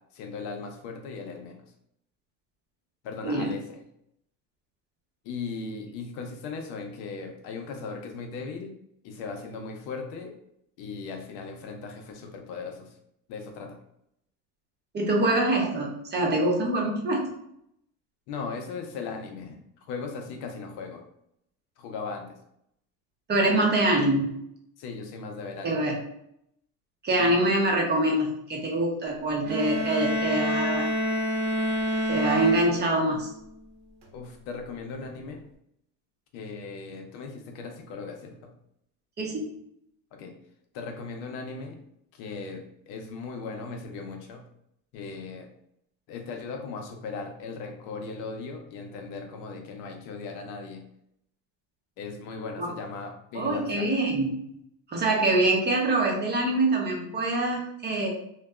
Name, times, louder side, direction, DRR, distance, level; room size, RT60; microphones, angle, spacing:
voice 1, 0.1-1.7 3.0-3.8 5.2-8.7 9.0-10.3 10.8-12.9 13.3-13.8 18.3-19.6 19.9-21.0 21.8-22.4 24.8-25.9 27.2-27.4 34.1-35.4 36.3-38.5 40.2-40.3 40.7-41.8 42.1-44.4 44.9-45.5 46.1-50.8 52.0-53.9, left 4 dB, 65° left, 3 dB, 0.7 m, -38 dB
voice 2, 14.9-17.3 23.3-24.4 25.6-26.0 27.0-30.9 32.1-33.3 39.2-39.6 52.6-52.7 53.3-54.5 54.9-58.1, right 2 dB, 25° right, 0 dB, 0.7 m, -25 dB
sound 1, 29.4-33.3, equal, 75° right, 0.8 m, -28 dB
2.6 x 2.3 x 2.2 m, 0.74 s
supercardioid pair, 100°, 41 cm